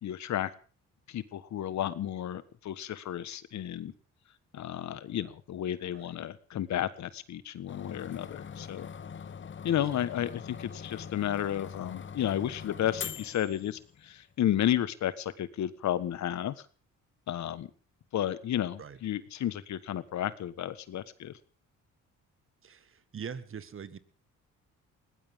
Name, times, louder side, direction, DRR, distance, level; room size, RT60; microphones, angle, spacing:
voice 1, 0.0-0.5 1.1-3.9 4.5-8.9 9.6-16.5 17.3-17.7 18.1-21.3, left 11 dB, 65° left, 15 dB, 1.4 m, -32 dB
sound 1, 7.7-14.2, left 7 dB, 40° left, 1.0 m, -43 dB
voice 2, 9.7-10.1 18.8-19.0 22.6-24.0, right 7 dB, 45° right, 14 dB, 1.7 m, -43 dB
21.0 x 18.0 x 3.7 m, 0.39 s
cardioid pair, 90°, 30 cm